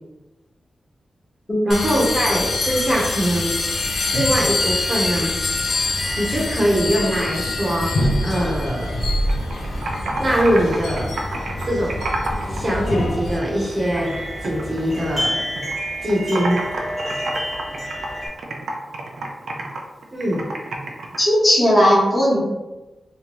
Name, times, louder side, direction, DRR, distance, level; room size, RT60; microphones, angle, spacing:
voice 1, 1.6-3.6 4.1-5.4 6.2-7.9 8.2-8.9 10.2-11.1 11.7-12.0 12.5-14.1 14.4-15.3 16.0-16.6 20.1-20.4, equal, 35° right, -5 dB, 0.8 m, -22 dB
sound 1, 1.7-13.4, left 2 dB, 75° left, 0.6 m, -25 dB
sound 2, 3.6-18.3, equal, 5° left, 1.2 m, -32 dB
Computer keyboard, 9.1-12.6 12.9-14.1 14.4-15.7 16.0-21.2, right 2 dB, 80° right, 0.5 m, -29 dB
voice 2, 21.2-22.4, equal, 25° left, -7 dB, 1.1 m, -16 dB
3.4 x 2.9 x 3.0 m, 1.1 s
wide cardioid pair, 175°, 0 cm